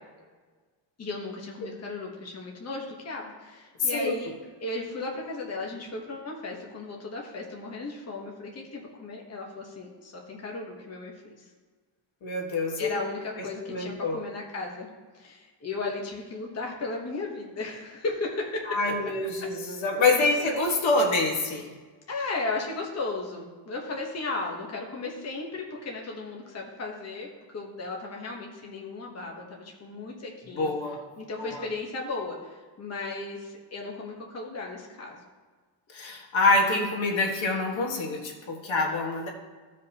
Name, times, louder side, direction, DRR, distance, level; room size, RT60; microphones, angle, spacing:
voice 1, 1.0-4.3 4.6-11.5 12.8-14.9 15.1-18.8 20.2-20.5 22.1-30.7 31.2-35.2, left 3 dB, 35° left, -1 dB, 1.1 m, -35 dB
voice 2, 3.8-4.3 12.2-13.0 13.4-14.2 18.7-21.7 30.5-31.0 31.4-31.6 35.9-39.3, left 2 dB, 85° left, 0 dB, 1.6 m, -26 dB
15.0 x 5.2 x 2.9 m, 1.4 s
wide cardioid pair, 175°, 46 cm